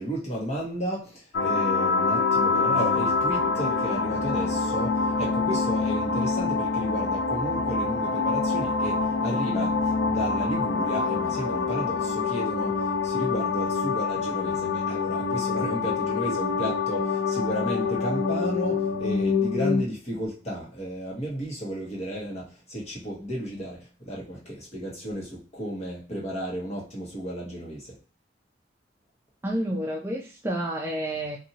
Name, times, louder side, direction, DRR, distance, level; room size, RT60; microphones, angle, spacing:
voice 1, 0.0-28.0, equal, 35° left, -4 dB, 1.2 m, -33 dB
sound 1, 1.3-19.8, left 4 dB, 65° left, 0.4 m, -26 dB
voice 2, 29.4-31.4, right 1 dB, 15° right, -1 dB, 0.4 m, -29 dB
2.7 x 2.6 x 2.8 m, 0.35 s
head